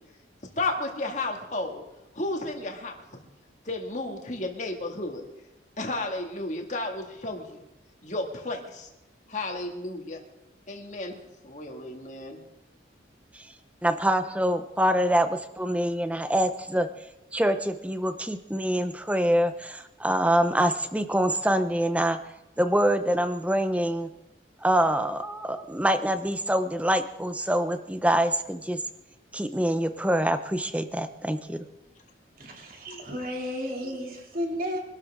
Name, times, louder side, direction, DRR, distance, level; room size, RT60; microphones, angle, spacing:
voice 1, 0.6-1.8 2.2-3.0 3.7-5.2 5.8-7.6 8.0-8.9 9.3-10.2 10.7-11.2 11.4-12.4 32.9-33.0, left 2 dB, 40° left, 2 dB, 2.1 m, -32 dB
voice 2, 13.8-15.3 15.6-16.9 17.3-22.2 22.6-24.1 24.6-28.8 29.3-31.6, right 1 dB, 5° right, 9 dB, 0.7 m, -25 dB
voice 3, 32.4-34.8, equal, 45° right, 1 dB, 2.8 m, -33 dB
24.0 x 12.5 x 3.7 m, 0.91 s
head